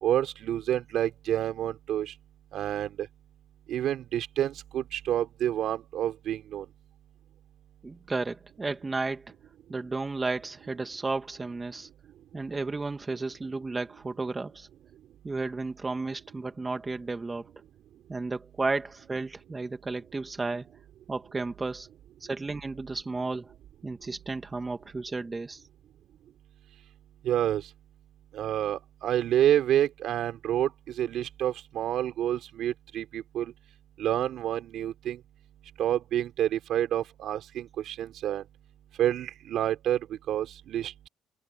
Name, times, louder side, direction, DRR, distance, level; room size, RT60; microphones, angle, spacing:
voice 1, 0.0-2.1 2.5-3.1 3.7-6.7 27.2-27.7 28.3-33.5 34.0-35.2 35.8-38.4 39.0-41.1, right 11 dB, 70° right, 3.8 m, -28 dB
voice 2, 7.8-9.3 9.7-11.9 12.3-14.7 15.2-17.5 18.1-20.7 21.1-21.9 22.2-23.5 23.8-25.6, right 3 dB, 25° right, 2.3 m, -33 dB
supercardioid pair, 70°, 0 cm